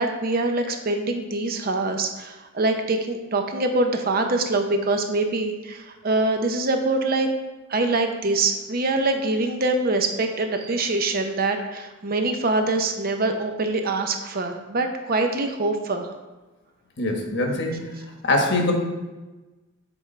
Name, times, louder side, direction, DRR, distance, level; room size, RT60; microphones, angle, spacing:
voice 1, 0.0-7.3 7.7-16.1, right 2 dB, 45° right, 5 dB, 0.6 m, -24 dB
voice 2, 17.0-17.9 18.2-18.7, left 2 dB, 50° left, 2 dB, 1.2 m, -23 dB
8.0 x 4.6 x 4.3 m, 1.1 s
head